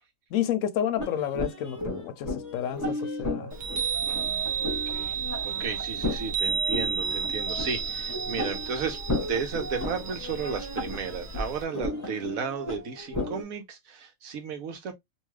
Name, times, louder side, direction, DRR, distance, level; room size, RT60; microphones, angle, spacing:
voice 1, 0.3-3.5, left 10 dB, 75° left, 0.9 m, -30 dB
sound 1, 1.0-13.4, left 2 dB, 15° left, 0.9 m, -35 dB
Chime, 3.5-11.6, right 6 dB, 50° right, 0.6 m, -32 dB
voice 2, 4.1-14.9, right 6 dB, 85° right, 1.2 m, -34 dB
2.8 x 2.3 x 3.1 m
omnidirectional pair, 1.4 m